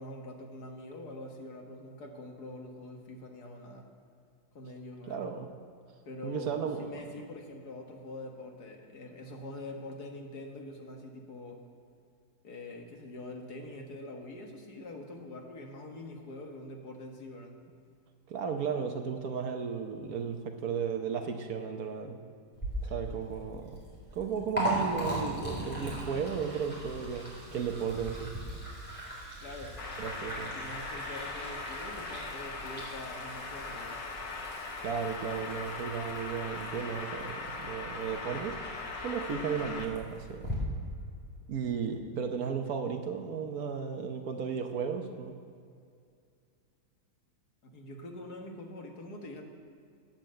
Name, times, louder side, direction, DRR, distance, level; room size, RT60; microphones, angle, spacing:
voice 1, 0.0-3.9 4.6-5.3 6.1-11.6 12.4-17.6 29.4-29.8 30.5-34.1 47.6-49.4, left 1 dB, 65° left, 2 dB, 1.9 m, -44 dB
voice 2, 5.1-5.5 6.2-7.0 18.3-22.2 22.9-23.8 24.1-28.3 30.0-30.5 34.8-40.5 41.5-45.3, right 6 dB, 65° right, 5 dB, 1.3 m, -34 dB
Liquid, 22.5-40.5, equal, 5° left, 3.9 m, -40 dB
sound 1, 29.8-39.9, left 3 dB, 90° left, 1.9 m, -40 dB
10.5 x 8.9 x 7.6 m, 2.3 s
omnidirectional pair, 1.9 m